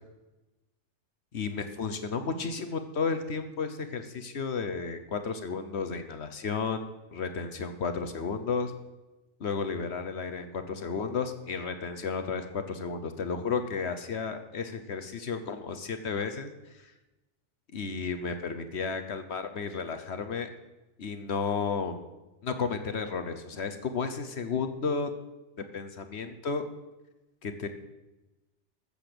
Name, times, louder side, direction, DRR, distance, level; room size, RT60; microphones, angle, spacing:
voice 1, 1.3-8.7 9.4-16.9 17.7-20.5 21.0-22.0 22.4-25.1 25.7-26.6 27.4-27.7, left 5 dB, 65° left, 9 dB, 1.2 m, -33 dB
13.5 x 7.9 x 6.8 m, 1.0 s
omnidirectional pair, 1.2 m